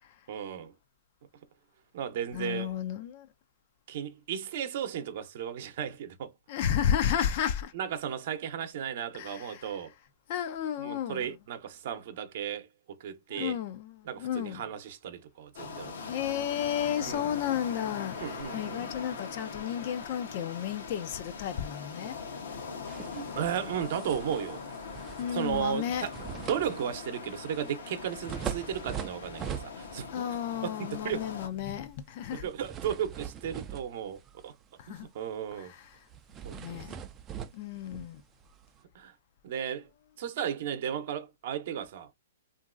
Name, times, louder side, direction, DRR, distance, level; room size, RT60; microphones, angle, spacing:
voice 1, 0.3-0.7 1.9-2.7 3.9-6.3 7.7-9.9 10.8-13.6 14.0-16.0 17.0-17.3 18.2-18.9 23.1-24.6 25.3-30.3 30.6-31.2 32.3-34.5 34.9-35.7 36.4-36.8 38.9-39.1 39.4-39.9 40.2-42.1, right 8 dB, 55° right, 0.7 m, -35 dB
voice 2, 2.3-3.3 6.5-7.7 9.1-9.7 10.3-11.3 13.3-14.6 16.1-22.2 25.2-26.1 30.1-32.5 34.8-35.1 35.6-36.0 36.4-36.9 37.5-38.2, left 9 dB, 45° left, 0.4 m, -33 dB
sound 1, 15.5-31.5, left 5 dB, 75° left, 0.8 m, -41 dB
sound 2, 22.9-30.2 30.6-30.8 32.4-34.6 35.0-35.2 35.5-35.6 36.1-38.8, right 8 dB, 20° right, 0.4 m, -42 dB
2.9 x 2.5 x 2.4 m
hypercardioid pair, 140°, 0 cm